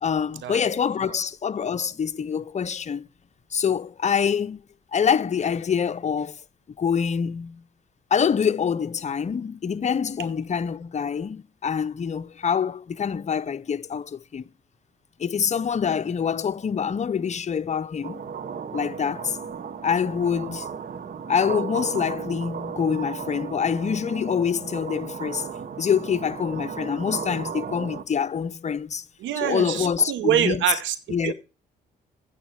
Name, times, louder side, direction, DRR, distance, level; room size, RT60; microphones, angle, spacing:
voice 1, 0.0-3.0 3.5-4.6 4.9-6.4 6.8-7.6 8.1-14.4 15.2-18.2 18.7-19.4 19.8-20.7 21.3-25.5 25.8-29.0 29.4-30.6 31.1-31.3, left 7 dB, 35° left, 0.7 m, -25 dB
sound 1, 18.0-28.0, right 7 dB, 50° right, 1.0 m, -35 dB
voice 2, 29.2-30.9 31.2-31.3, right 11 dB, 80° right, 0.8 m, -25 dB
8.7 x 8.0 x 5.8 m
supercardioid pair, 60°, 19 cm